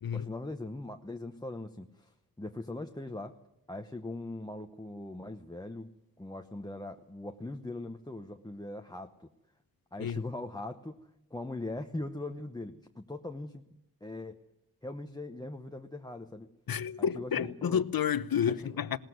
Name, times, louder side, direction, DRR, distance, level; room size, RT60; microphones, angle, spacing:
voice 1, 0.1-3.4 3.7-5.9 6.2-9.3 9.9-13.7 14.0-14.4 14.8-16.5 17.0-17.8 18.6-18.8, left 2 dB, 10° left, 0.9 m, -41 dB
voice 2, 16.7-19.0, left 8 dB, 70° left, 1.0 m, -30 dB
20.0 x 18.5 x 9.4 m
wide cardioid pair, 155°, 37 cm